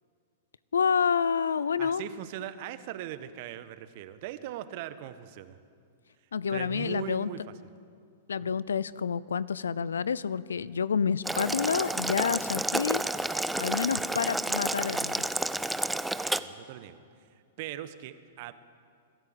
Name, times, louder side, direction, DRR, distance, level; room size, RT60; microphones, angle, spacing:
voice 1, 0.7-2.1 6.3-7.3 8.3-13.0 13.6-15.2, left 6 dB, 75° left, 20 dB, 0.6 m, -28 dB
voice 2, 1.8-5.6 6.5-7.4 8.4-8.6 16.4-17.0 17.6-18.5, right 12 dB, 50° right, 12 dB, 1.2 m, -39 dB
Boiling, 11.2-16.4, right 2 dB, 5° right, 0.7 m, -30 dB
25.5 x 13.0 x 7.9 m, 2.3 s
hypercardioid pair, 105°, 0 cm